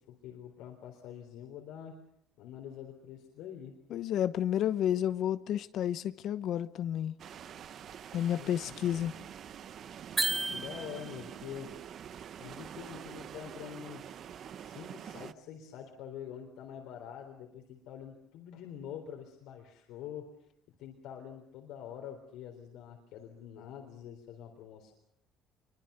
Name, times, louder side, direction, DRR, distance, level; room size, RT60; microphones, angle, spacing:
voice 1, 0.1-2.0 2.4-3.8 8.3-8.9 10.5-11.8 12.4-14.2 14.5-20.4 20.8-24.9, left 9 dB, 80° left, 3.8 m, -46 dB
voice 2, 3.9-7.1 8.1-9.1, left 10 dB, 65° left, 1.0 m, -31 dB
sound 1, 7.2-15.3, right 9 dB, 55° right, 0.9 m, -46 dB
sound 2, 10.2-11.3, right 2 dB, 15° right, 1.1 m, -33 dB
24.5 x 24.0 x 6.9 m
cardioid pair, 105°, 0 cm